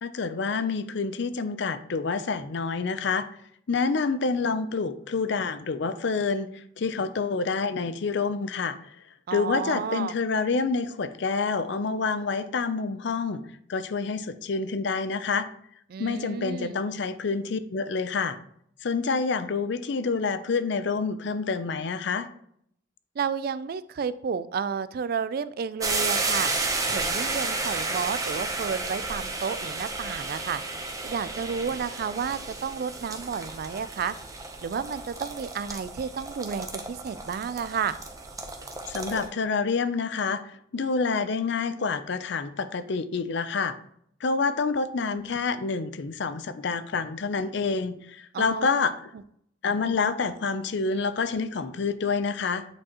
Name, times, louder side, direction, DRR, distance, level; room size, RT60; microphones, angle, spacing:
voice 1, 0.0-3.3 3.7-8.9 9.3-13.4 13.7-15.5 16.0-18.4 18.8-22.3 38.9-43.7 44.2-48.9 49.6-52.6, left 4 dB, 60° left, 12 dB, 0.5 m, -28 dB
voice 2, 9.3-10.1 15.9-16.8 23.2-26.5 26.9-30.6 31.0-34.1 34.6-37.9 48.3-48.7, right 6 dB, 50° right, 16 dB, 0.3 m, -31 dB
sound 1, 25.8-39.3, right 3 dB, 15° right, 0.7 m, -32 dB
8.6 x 4.6 x 2.9 m, 0.68 s
head